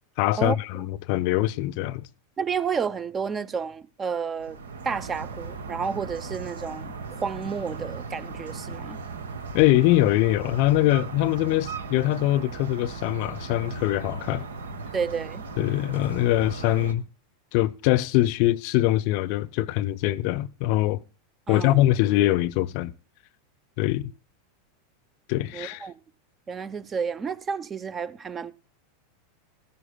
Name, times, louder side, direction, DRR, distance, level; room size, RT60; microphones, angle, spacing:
voice 1, 0.2-2.1 9.5-14.5 15.6-17.0 17.5-21.0 21.5-22.9 23.8-24.1 25.3-25.9, left 15 dB, 55° left, 0.6 m, -23 dB
voice 2, 2.4-4.6 4.8-9.0 14.9-15.5 21.5-21.8 25.5-26.0 26.5-28.5, right 6 dB, 25° right, 0.7 m, -31 dB
Balcony Ambiance, 4.3-16.9, right 4 dB, 75° right, 1.3 m, -37 dB
17.0 x 14.5 x 2.3 m
figure-of-eight pair, 90°, 0 cm